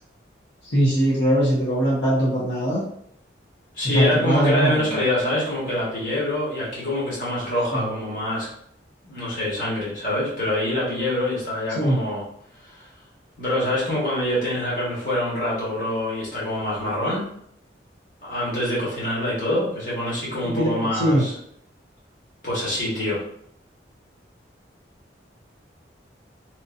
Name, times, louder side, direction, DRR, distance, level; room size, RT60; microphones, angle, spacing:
voice 1, 0.6-2.8 3.8-5.0 7.7-7.9 11.7-12.0 20.4-21.3, equal, 75° left, -7 dB, 0.9 m, -21 dB
voice 2, 3.7-8.5 9.0-12.2 12.6-12.9 13.4-17.2 18.2-21.3 22.4-23.2, left 1 dB, 45° left, -7 dB, 1.4 m, -25 dB
3.0 x 2.7 x 2.5 m, 0.69 s
head